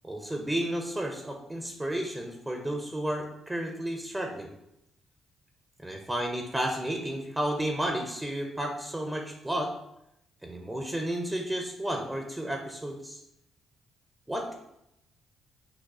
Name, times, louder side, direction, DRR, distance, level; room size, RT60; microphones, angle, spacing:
voice 1, 0.0-4.5 5.8-9.7 10.4-13.2 14.3-14.5, right 1 dB, 10° right, 3 dB, 0.5 m, -32 dB
4.7 x 2.3 x 4.7 m, 0.83 s
cardioid pair, 90°, 0 cm